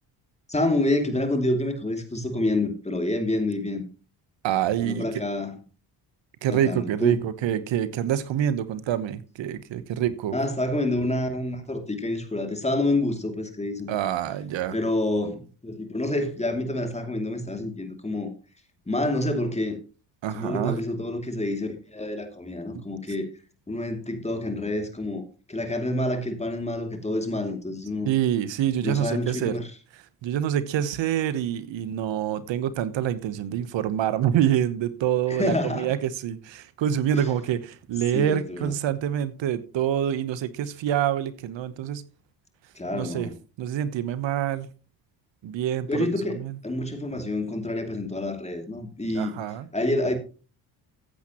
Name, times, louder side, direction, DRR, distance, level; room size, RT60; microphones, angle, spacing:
voice 1, 0.5-3.8 4.8-5.6 6.5-7.2 10.3-13.9 14.7-18.3 18.9-19.8 20.3-23.3 23.7-28.1 28.8-29.7 35.3-35.9 37.1-37.3 38.1-38.7 42.8-43.3 45.9-49.3 49.7-50.2, left 1 dB, 15° left, 2.6 m, -28 dB
voice 2, 4.4-5.2 6.4-10.4 13.9-14.8 20.2-20.7 28.0-29.6 30.2-42.0 42.9-43.3 43.6-44.7 45.4-46.6 49.2-49.7, right 10 dB, 65° right, 1.1 m, -26 dB
15.0 x 8.2 x 3.0 m
supercardioid pair, 65°, 48 cm